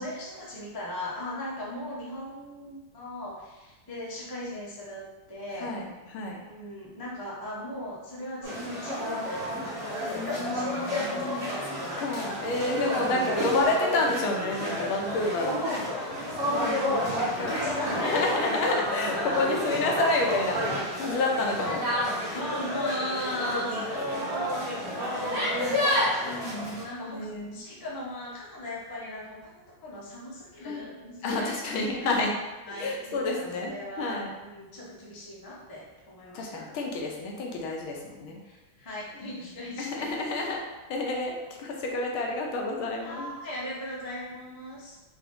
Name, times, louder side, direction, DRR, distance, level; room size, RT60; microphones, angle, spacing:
voice 1, 0.0-5.7 6.4-11.2 13.0-13.8 15.4-18.2 19.0-19.7 22.3-26.1 26.8-31.5 32.7-36.7 38.4-40.1 43.0-45.0, left 1 dB, 35° left, -6 dB, 0.3 m, -38 dB
voice 2, 5.6-6.4 10.1-15.6 16.5-20.6 21.0-21.8 25.6-27.7 30.6-30.9 31.2-32.4 32.7-33.7 34.0-34.3 36.3-38.4 39.2-39.3 39.8-40.6 40.9-43.3, left 2 dB, 90° left, 0 dB, 1.6 m, -30 dB
sound 1, 8.4-26.8, equal, 35° right, 1.1 m, -30 dB
4.6 x 2.6 x 3.6 m, 1.1 s
omnidirectional pair, 2.2 m